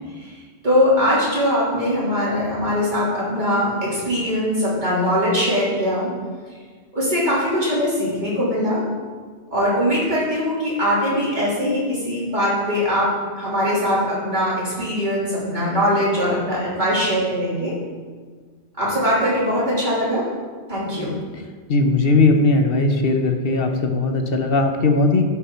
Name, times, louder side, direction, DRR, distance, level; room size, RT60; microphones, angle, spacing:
voice 1, 0.6-6.1 6.9-8.8 9.5-17.8 18.8-20.3 20.7-21.1, equal, 40° right, -8 dB, 3.2 m, -21 dB
voice 2, 21.7-25.2, left 3 dB, 60° left, 5 dB, 1.0 m, -18 dB
11.0 x 5.6 x 4.4 m, 1.5 s
omnidirectional pair, 1.2 m